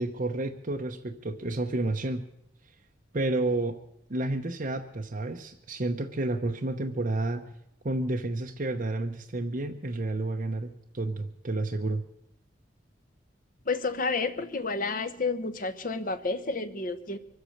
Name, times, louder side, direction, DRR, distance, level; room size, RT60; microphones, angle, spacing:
voice 1, 0.0-2.3 3.1-3.8 4.1-7.5 7.8-12.0, right 2 dB, 45° right, 3 dB, 0.8 m, -30 dB
voice 2, 13.7-17.2, left 3 dB, 50° left, 10 dB, 1.0 m, -30 dB
24.0 x 8.2 x 6.5 m, 0.80 s
head